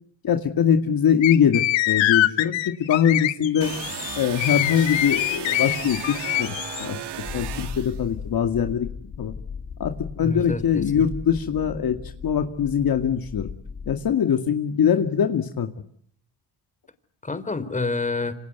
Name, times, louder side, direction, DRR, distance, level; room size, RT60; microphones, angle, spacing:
voice 1, 0.2-3.7 4.2-7.0 7.3-8.9 9.2-9.3 9.8-12.0 12.2-13.5 13.9-15.7, left 8 dB, 50° left, 6 dB, 2.2 m, -22 dB
sound 1, 1.2-6.8, left 15 dB, 80° left, 1.5 m, -24 dB
sound 2, 3.6-8.0, right 10 dB, 60° right, 2.6 m, -35 dB
sound 3, 7.2-14.0, left 6 dB, 35° left, 3.1 m, -37 dB
voice 2, 10.2-11.1 17.2-18.3, left 3 dB, 15° left, 12 dB, 3.5 m, -28 dB
27.5 x 26.5 x 8.2 m, 0.63 s
cardioid pair, 105°, 45 cm